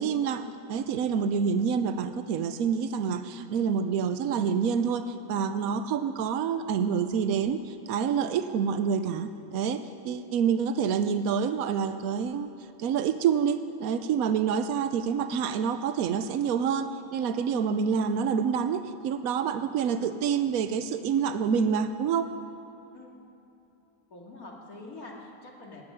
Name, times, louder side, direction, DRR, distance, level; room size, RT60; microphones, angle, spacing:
voice 1, 0.0-12.5 12.8-22.3, right 7 dB, 80° right, 10 dB, 1.1 m, -27 dB
voice 2, 24.1-25.8, left 2 dB, 80° left, -2 dB, 2.6 m, -45 dB
16.0 x 7.8 x 9.6 m, 2.8 s
omnidirectional pair, 1.5 m